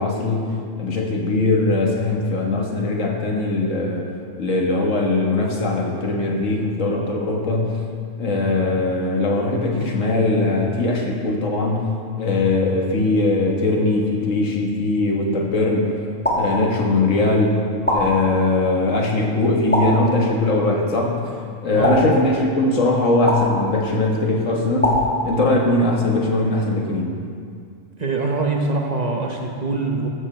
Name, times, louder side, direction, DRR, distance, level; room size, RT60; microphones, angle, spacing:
voice 1, 0.0-4.1 4.4-7.7 8.2-11.9 12.2-15.9 16.4-17.5 17.9-21.2 21.6-27.1, left 2 dB, 90° left, -1 dB, 1.8 m, -20 dB
sound 1, 16.2-17.1 17.9-18.7 19.7-20.6 21.8-22.7 23.3-24.1 24.8-25.8, equal, 10° left, 1.7 m, -24 dB
voice 2, 21.7-22.2 28.0-30.1, right 3 dB, 40° right, 1 dB, 0.9 m, -23 dB
13.5 x 7.4 x 4.4 m, 2.3 s
omnidirectional pair, 1.3 m